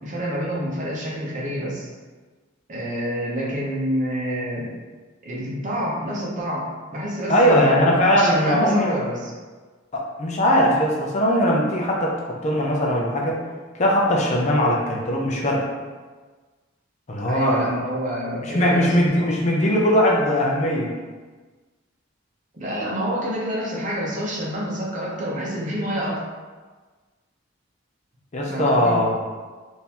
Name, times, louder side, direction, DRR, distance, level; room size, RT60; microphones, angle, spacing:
voice 1, 0.0-1.9 2.7-4.7 5.2-9.3 17.3-19.3 22.5-26.2 28.4-28.9, equal, 40° right, -4 dB, 0.8 m, -28 dB
voice 2, 7.3-9.0 9.9-13.4 13.7-15.7 17.1-17.7 18.4-20.9 28.3-29.2, equal, 35° left, -2 dB, 0.5 m, -20 dB
3.7 x 2.6 x 2.9 m, 1.4 s
head